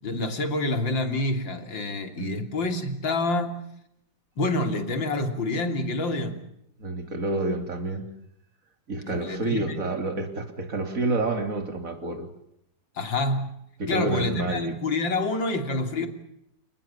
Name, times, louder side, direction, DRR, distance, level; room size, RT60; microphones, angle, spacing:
voice 1, 0.0-3.6 4.4-6.4 9.1-9.8 13.0-13.5 13.9-16.1, left 2 dB, 70° left, 6 dB, 3.8 m, -27 dB
voice 2, 2.2-2.5 6.8-8.1 8.9-12.3 13.8-14.7, right 2 dB, 45° right, 6 dB, 3.6 m, -29 dB
30.0 x 19.5 x 7.2 m, 0.77 s
omnidirectional pair, 2.1 m